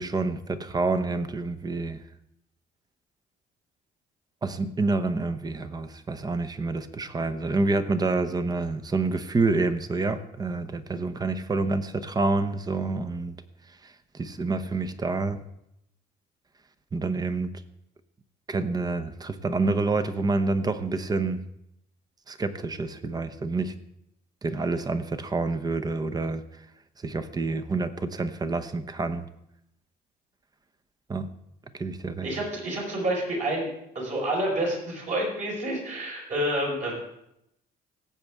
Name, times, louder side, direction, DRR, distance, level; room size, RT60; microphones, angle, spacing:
voice 1, 0.0-2.0 4.4-13.4 13.8-15.4 16.9-17.5 18.5-21.4 22.3-23.7 24.4-26.4 27.0-29.2 31.1-31.3 31.8-32.3, right 3 dB, 25° right, 11 dB, 0.8 m, -28 dB
voice 2, 32.2-33.7 33.9-36.9, right 1 dB, 45° right, -1 dB, 4.8 m, -28 dB
18.0 x 8.1 x 3.5 m, 0.80 s
cardioid pair, 110°, 17 cm